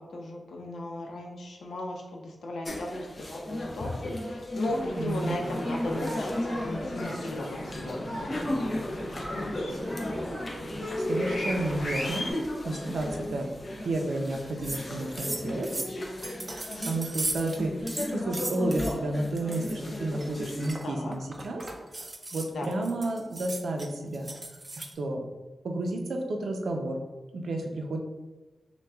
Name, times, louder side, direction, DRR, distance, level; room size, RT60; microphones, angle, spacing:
voice 1, 0.1-3.1 3.5-8.7 9.0-9.7 20.8-21.1 22.5-22.7, left 1 dB, 90° left, 0 dB, 0.6 m, -36 dB
sound 1, 2.6-20.7, left 1 dB, 35° left, 0.5 m, -35 dB
sound 2, 4.6-12.3, left 1 dB, 65° left, 1.0 m, -37 dB
voice 2, 5.0-5.5 11.0-13.5 13.8-15.7 16.8-21.7 22.0-24.3 24.8-25.2 25.6-27.0 27.3-28.0, right 2 dB, 80° right, 2 dB, 0.5 m, -31 dB
sound 3, 14.3-14.4 14.6-14.9 15.2-17.6 17.9-19.0 19.4-19.8 20.2-24.9, right 2 dB, 25° right, 0.4 m, -37 dB
5.7 x 2.3 x 2.3 m, 1.2 s
wide cardioid pair, 95°, 0 cm